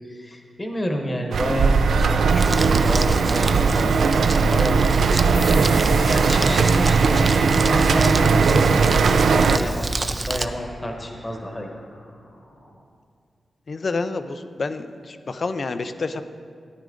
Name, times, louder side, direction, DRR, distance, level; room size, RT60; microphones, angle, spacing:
voice 1, 0.1-7.2 7.6-11.7, equal, 15° left, 2 dB, 1.1 m, -29 dB
sound 1, 1.3-9.6, right 5 dB, 85° right, 0.5 m, -18 dB
Crumpling crinkling, 2.3-10.4, right 2 dB, 25° right, 0.4 m, -29 dB
sound 2, 5.3-12.7, left 2 dB, 85° left, 3.2 m, -41 dB
voice 2, 13.7-16.2, left 3 dB, 40° left, 10 dB, 0.5 m, -28 dB
14.0 x 10.5 x 3.8 m, 2.2 s
wide cardioid pair, 165°, 0 cm